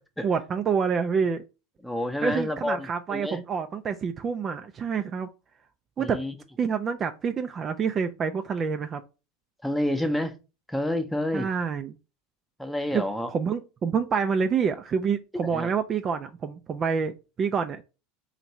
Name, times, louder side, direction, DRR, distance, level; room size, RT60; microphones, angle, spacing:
voice 1, 0.2-1.4 2.2-5.3 6.0-6.2 6.6-9.0 11.3-12.0 12.9-17.8, right 6 dB, 35° right, 0.3 m, -27 dB
voice 2, 1.8-2.8 3.1-3.4 6.0-6.3 9.6-10.3 10.7-11.5 12.6-13.3 15.4-15.7, left 1 dB, 5° left, 0.7 m, -28 dB
2.9 x 2.6 x 4.2 m
hypercardioid pair, 90°, 0 cm